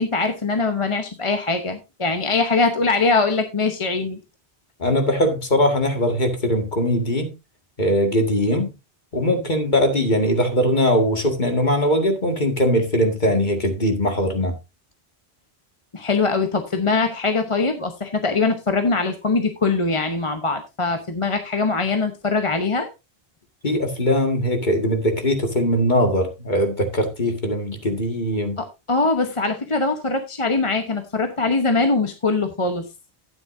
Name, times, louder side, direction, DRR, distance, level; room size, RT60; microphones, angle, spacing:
voice 1, 0.0-4.2 15.9-22.9 28.6-32.8, left 3 dB, 30° left, 1.0 m, -22 dB
voice 2, 4.8-7.3 7.8-8.7 9.1-14.6 23.6-28.6, equal, 50° left, 2.2 m, -21 dB
12.0 x 9.4 x 2.7 m
omnidirectional pair, 1.0 m